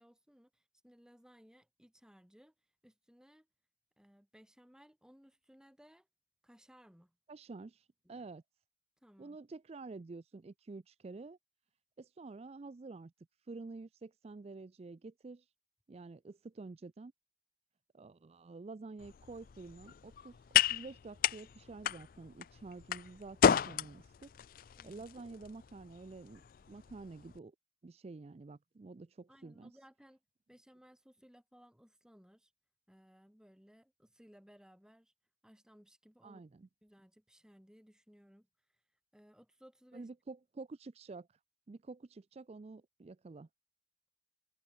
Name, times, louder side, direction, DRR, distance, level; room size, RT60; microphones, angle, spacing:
voice 1, 0.0-2.5 2.8-3.5 4.0-6.1 6.4-7.1 8.0-8.3 9.0-9.4 24.7-25.0 29.3-30.2 30.5-32.5 32.9-35.1 35.4-36.4 36.8-38.5 39.1-40.1, equal, 5° right, 1.4 m, -62 dB
voice 2, 7.3-7.8 8.1-8.4 9.2-11.4 12.0-13.1 13.5-15.5 15.9-17.1 17.9-24.3 24.6-27.5 27.8-29.8 36.2-36.7 39.9-41.4 41.7-43.5, right 3 dB, 35° right, 0.4 m, -49 dB
sound 1, 19.0-27.4, left 8 dB, 50° left, 0.4 m, -34 dB
head